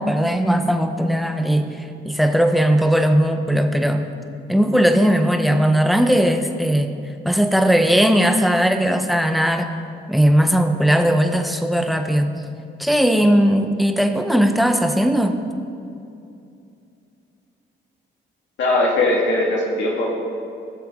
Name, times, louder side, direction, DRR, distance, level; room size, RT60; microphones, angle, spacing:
voice 1, 0.0-4.0 4.5-6.9 7.2-9.7 10.1-12.3 12.8-15.3, equal, ahead, 6 dB, 0.9 m, -18 dB
voice 2, 18.6-20.1, left 2 dB, 70° left, -2 dB, 2.2 m, -19 dB
18.0 x 6.8 x 3.8 m, 2.6 s
cardioid pair, 90°, 20 cm